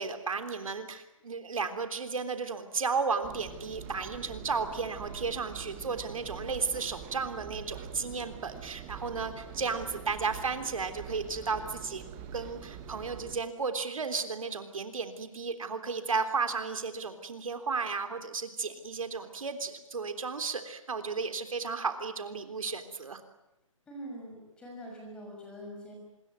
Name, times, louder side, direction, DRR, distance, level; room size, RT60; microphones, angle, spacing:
voice 1, 0.0-12.0 12.3-23.2, right 4 dB, 75° right, 8 dB, 3.5 m, -34 dB
Engine, 3.2-13.4, right 7 dB, 15° right, 1.3 m, -45 dB
voice 2, 23.9-25.9, equal, 5° left, 0 dB, 6.2 m, -44 dB
26.0 x 22.5 x 9.5 m, 0.92 s
hypercardioid pair, 175°, 17 cm